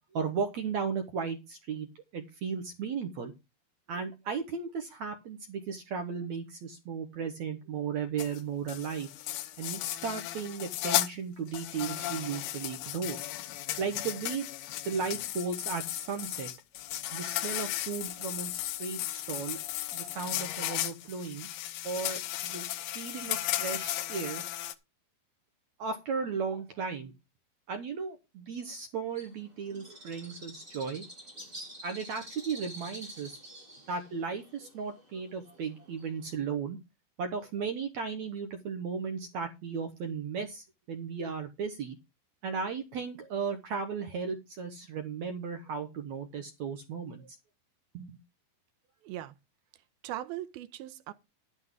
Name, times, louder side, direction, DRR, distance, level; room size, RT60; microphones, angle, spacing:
voice 1, 0.1-3.3 3.9-9.1 9.6-13.2 13.8-14.5 14.8-16.5 17.1-19.6 19.9-21.5 21.8-22.7 23.0-24.4 25.8-27.1 27.7-31.0 31.8-33.4 33.9-36.8 37.2-42.0 42.4-47.4 47.9-48.2, right 5 dB, 65° right, 2.0 m, -35 dB
sound 1, 8.2-8.4 8.7-11.1 11.5-24.7, left 14 dB, 90° left, 2.8 m, -35 dB
Bird, 29.1-36.4, right 1 dB, 15° right, 6.4 m, -48 dB
voice 2, 49.0-49.4 50.0-51.1, right 13 dB, 85° right, 2.6 m, -39 dB
11.5 x 9.9 x 3.7 m
omnidirectional pair, 4.4 m